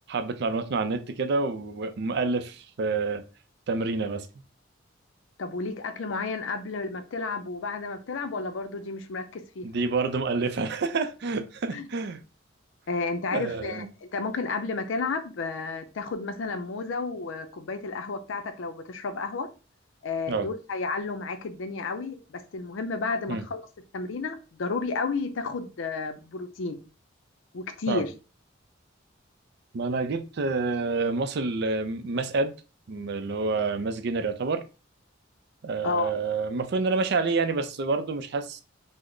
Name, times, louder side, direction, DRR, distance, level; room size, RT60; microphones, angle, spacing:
voice 1, 0.1-3.2 3.7-4.3 9.6-12.2 13.3-13.9 20.3-20.5 23.3-23.4 27.9-28.0 29.7-32.5 32.9-34.6 35.6-38.6, right 3 dB, 55° right, 0.4 m, -28 dB
voice 2, 5.4-9.7 11.7-11.9 12.9-19.5 20.0-23.6 23.9-26.8 27.5-28.1 35.8-36.1, left 4 dB, 80° left, 0.5 m, -32 dB
3.7 x 2.0 x 3.2 m
head